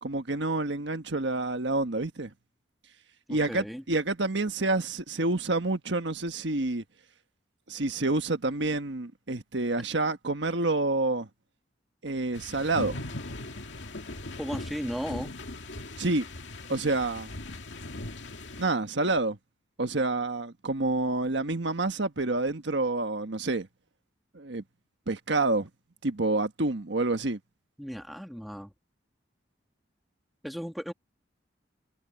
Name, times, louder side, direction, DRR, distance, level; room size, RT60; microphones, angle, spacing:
voice 1, 0.0-2.3 3.3-6.8 7.7-11.3 12.0-13.0 16.0-16.2 16.7-17.3 18.6-19.4 19.8-23.7 24.3-24.6 25.1-25.7 26.0-27.4, right 2 dB, 70° right, 1.4 m, -28 dB
voice 2, 3.3-3.8 14.4-15.3 27.8-28.7 30.4-30.9, equal, ahead, 2.0 m, -35 dB
sound 1, 12.3-18.7, left 2 dB, 75° left, 2.2 m, -39 dB
head